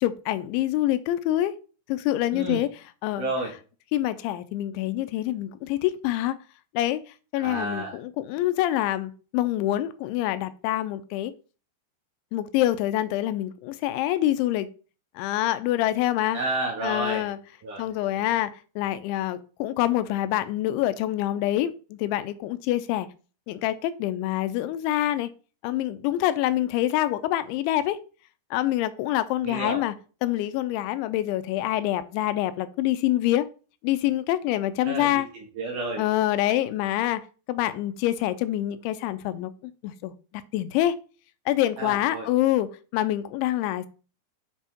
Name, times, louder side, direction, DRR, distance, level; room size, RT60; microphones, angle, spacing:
voice 1, 0.0-1.5 1.9-2.7 3.0-3.3 3.9-6.4 6.7-7.0 7.3-11.3 12.3-14.7 15.2-16.4 16.8-17.4 17.8-23.1 23.5-25.3 25.6-28.0 28.5-29.9 30.2-33.5 33.8-35.3 36.0-40.1 40.5-41.0 41.5-43.9, left 14 dB, 85° left, 3.0 m, -26 dB
voice 2, 2.3-2.6 3.2-3.5 7.4-8.0 16.3-17.2 17.6-17.8 29.4-29.8 34.9-36.0 41.8-42.3, right 2 dB, 60° right, 2.4 m, -31 dB
7.5 x 5.5 x 4.5 m
omnidirectional pair, 5.3 m